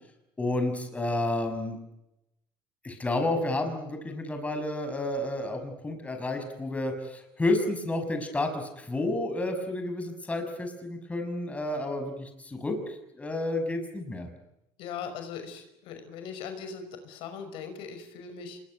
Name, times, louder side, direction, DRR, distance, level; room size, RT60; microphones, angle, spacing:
voice 1, 0.4-1.8 2.8-14.3, left 2 dB, 15° left, 6 dB, 5.8 m, -30 dB
voice 2, 14.8-18.6, left 6 dB, 70° left, 8 dB, 5.6 m, -40 dB
26.5 x 22.0 x 9.6 m, 0.88 s
cardioid pair, 120°, 9 cm